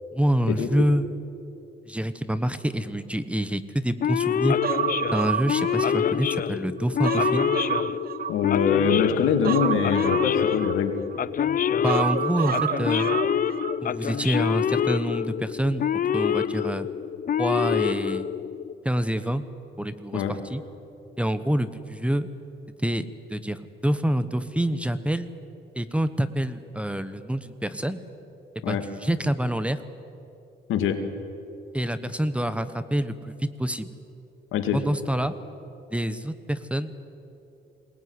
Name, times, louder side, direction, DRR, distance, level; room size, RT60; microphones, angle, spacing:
voice 1, 0.1-1.1 1.9-4.6 5.1-7.5 11.7-13.1 13.8-15.9 16.1-16.9 17.4-18.3 18.8-19.4 19.8-20.6 21.2-22.3 22.8-25.3 25.7-28.0 28.5-29.8 31.7-33.9 34.7-35.3 35.9-36.9, right 1 dB, 5° right, 13 dB, 1.1 m, -27 dB
Male speech man speaking / Siren, 4.0-18.7, left 8 dB, 45° left, 0.6 m, -26 dB
Human voice, 4.6-6.4 6.8-8.8 9.4-11.2 11.9-13.8 14.1-14.2, right 8 dB, 50° right, 0.9 m, -29 dB
voice 2, 8.3-10.9 20.1-20.3 28.6-28.8 30.7-31.0 34.5-34.8, left 7 dB, 90° left, 6 dB, 2.2 m, -23 dB
22.5 x 19.0 x 9.7 m, 2.8 s
cardioid pair, 90°, 20 cm